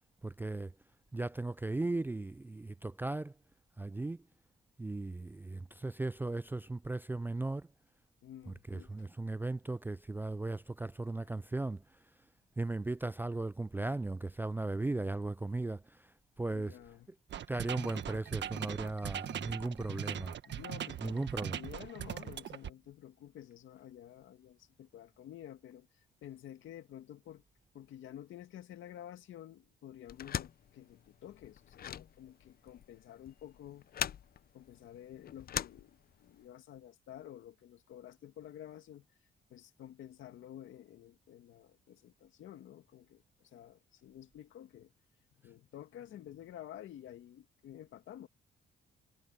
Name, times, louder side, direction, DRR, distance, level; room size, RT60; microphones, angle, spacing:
voice 1, 0.2-0.7 1.1-3.3 3.8-4.2 4.8-7.7 8.5-11.8 12.6-16.1 16.4-16.8 17.5-20.3 21.0-21.6, right 2 dB, 10° right, 0.3 m, -37 dB
voice 2, 8.2-9.0 16.5-17.1 19.9-20.1 20.5-27.4 27.7-33.8 34.5-39.1 39.5-44.9 45.3-48.3, left 11 dB, 75° left, 2.0 m, -51 dB
sound 1, 17.3-22.7, right 10 dB, 65° right, 1.6 m, -40 dB
sound 2, 30.1-36.4, left 10 dB, 50° left, 0.6 m, -41 dB
cardioid pair, 90°, 20 cm